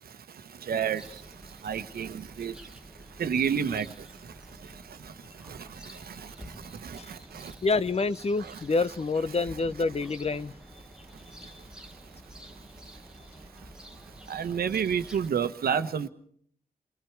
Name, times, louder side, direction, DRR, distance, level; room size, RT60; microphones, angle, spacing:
voice 1, 0.7-1.0 1.6-2.1 2.4-2.5 3.2-3.8 14.3-16.1, right 7 dB, 70° right, 1.2 m, -28 dB
sound 1, 1.0-15.3, equal, 5° right, 1.4 m, -49 dB
voice 2, 7.6-10.8 11.3-11.6, left 3 dB, 40° left, 0.8 m, -28 dB
28.5 x 21.0 x 4.7 m
cardioid pair, 65°, 16 cm